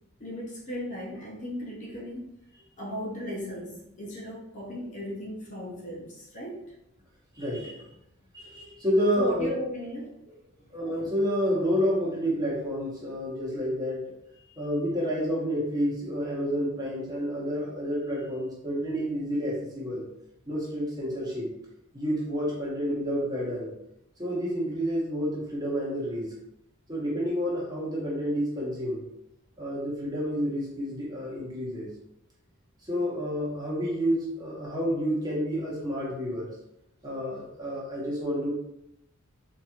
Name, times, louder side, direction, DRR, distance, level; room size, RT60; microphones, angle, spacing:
voice 1, 0.2-2.3 2.8-6.7 9.1-10.1 10.6-10.7, equal, 35° left, -2 dB, 0.6 m, -36 dB
voice 2, 7.3-7.9 8.3-9.5 10.7-14.0 14.6-20.1 20.5-21.5 21.9-23.7 24.2-26.3 26.9-29.0 29.6-31.9 32.9-36.5 37.0-38.5, equal, 20° right, -6 dB, 1.1 m, -29 dB
4.0 x 2.9 x 2.4 m, 0.82 s
head